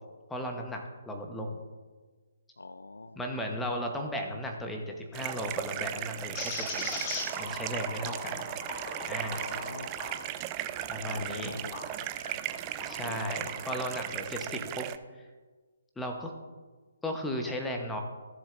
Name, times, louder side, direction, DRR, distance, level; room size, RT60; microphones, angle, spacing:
voice 1, 0.3-1.6 3.2-7.0 7.4-8.5 9.0-9.4 10.9-11.6 12.9-14.9 16.0-16.3 17.0-18.0, equal, 5° left, 2 dB, 1.0 m, -35 dB
voice 2, 2.6-3.2 8.0-8.3 9.4-9.9 11.0-12.4 13.0-13.3, left 3 dB, 75° left, 14 dB, 0.3 m, -44 dB
sound 1, 5.1-15.0, right 13 dB, 25° right, 0.4 m, -37 dB
sound 2, 6.4-11.9 12.4-13.6, left 2 dB, 20° left, 1.8 m, -40 dB
14.5 x 7.2 x 2.6 m, 1.4 s
figure-of-eight pair, 135°, 0 cm